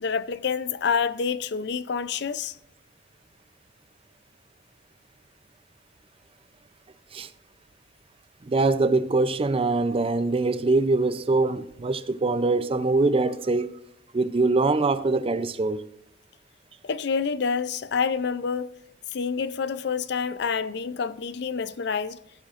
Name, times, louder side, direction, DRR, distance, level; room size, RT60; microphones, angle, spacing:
voice 1, 0.0-2.5 16.8-18.7 19.1-22.2, left 5 dB, 65° left, 0.5 m, -27 dB
voice 2, 8.4-13.8 14.1-15.8, right 3 dB, 30° right, 0.5 m, -23 dB
15.5 x 9.2 x 2.5 m
head